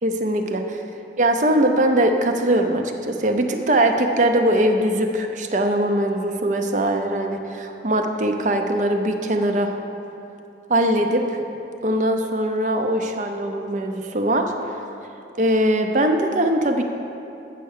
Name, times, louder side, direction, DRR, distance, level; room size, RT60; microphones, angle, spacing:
voice 1, 0.0-0.8 1.2-9.7 10.7-11.4 11.8-14.5 15.4-16.8, right 1 dB, 45° right, 5 dB, 0.6 m, -21 dB
8.2 x 5.7 x 6.5 m, 2.8 s
head